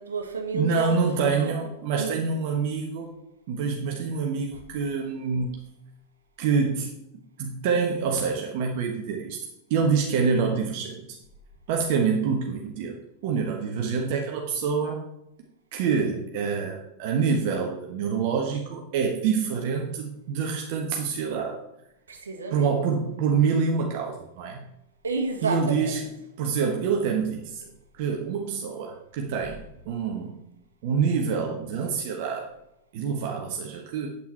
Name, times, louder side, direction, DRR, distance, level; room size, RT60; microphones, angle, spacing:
voice 1, 0.0-1.0 1.4-1.5 1.9-2.2 22.1-22.7 25.0-26.1, right 3 dB, 70° right, 3 dB, 1.5 m, -30 dB
voice 2, 0.5-3.1 3.5-5.5 6.4-6.9 7.4-9.4 9.7-11.0 11.7-13.0 13.2-15.0 15.7-21.6 22.5-24.7 25.4-26.0 26.4-27.7 28.0-30.4 30.8-32.5 32.9-34.1, right 5 dB, 50° right, 1 dB, 1.2 m, -26 dB
8.4 x 8.0 x 4.4 m, 0.84 s
figure-of-eight pair, 90°, 0 cm